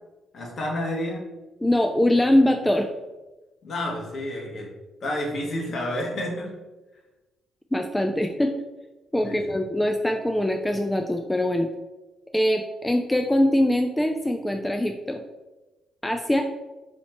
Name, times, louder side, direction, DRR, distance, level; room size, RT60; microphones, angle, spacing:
voice 1, 0.3-1.3 3.6-4.7 5.0-6.5 9.2-9.6, left 1 dB, 50° left, -2 dB, 1.4 m, -30 dB
voice 2, 1.6-2.9 7.7-8.5 9.1-11.7 12.3-15.2 16.0-16.4, left 1 dB, 10° left, 4 dB, 0.4 m, -22 dB
4.3 x 2.8 x 4.3 m, 1.1 s
cardioid pair, 90°, 0 cm